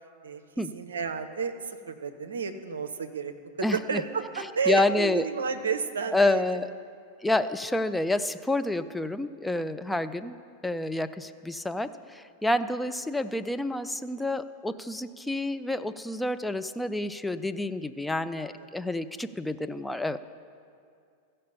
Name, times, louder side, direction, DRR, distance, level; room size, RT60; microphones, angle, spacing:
voice 1, 0.7-6.4 9.6-9.8, right 5 dB, 70° right, 8 dB, 0.6 m, -31 dB
voice 2, 3.6-4.0 4.7-5.3 6.1-6.7 7.2-10.4 10.6-20.2, left 2 dB, 5° left, 10 dB, 0.3 m, -28 dB
15.0 x 5.4 x 5.5 m, 2.3 s
figure-of-eight pair, 90°, 0 cm